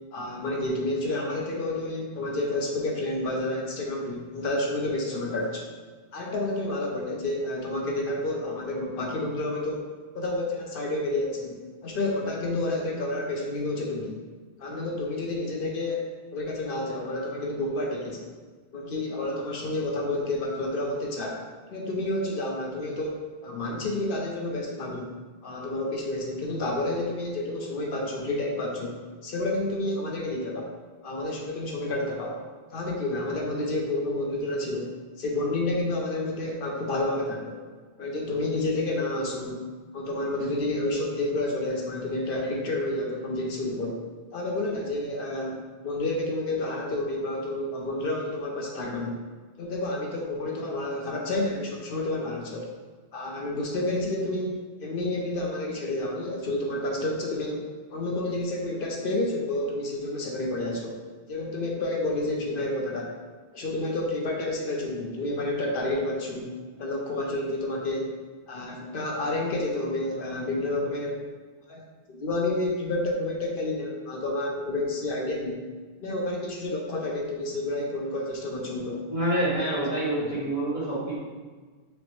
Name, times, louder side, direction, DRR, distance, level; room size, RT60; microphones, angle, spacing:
voice 1, 0.1-5.7 6.1-9.9 10.1-11.6 11.8-14.2 14.6-18.3 18.7-21.4 21.7-25.1 25.4-29.0 29.2-30.7 31.0-32.4 32.7-34.9 35.2-37.6 38.0-39.6 39.9-44.0 44.3-49.2 49.6-52.7 53.1-61.0 61.3-63.1 63.5-66.5 66.8-68.1 68.5-71.2 71.7-71.8 72.1-75.6 76.0-79.0 79.7-79.8, left 2 dB, 60° left, -1 dB, 0.7 m, -30 dB
voice 2, 79.1-81.2, right 1 dB, 35° left, -8 dB, 0.9 m, -27 dB
6.0 x 2.0 x 3.0 m, 1.4 s
omnidirectional pair, 1.1 m